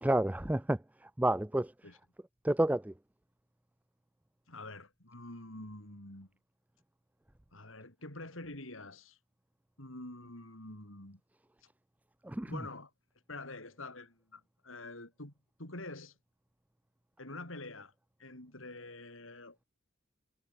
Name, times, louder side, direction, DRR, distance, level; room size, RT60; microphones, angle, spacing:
voice 1, 0.0-0.8 1.2-1.7 2.4-2.9 12.3-12.5, right 1 dB, 10° right, 0.4 m, -29 dB
voice 2, 4.5-6.3 7.5-9.2 9.8-11.2 12.4-12.9 13.3-15.3 15.6-16.1 17.2-17.9 18.2-19.7, left 2 dB, 85° left, 7.6 m, -46 dB
head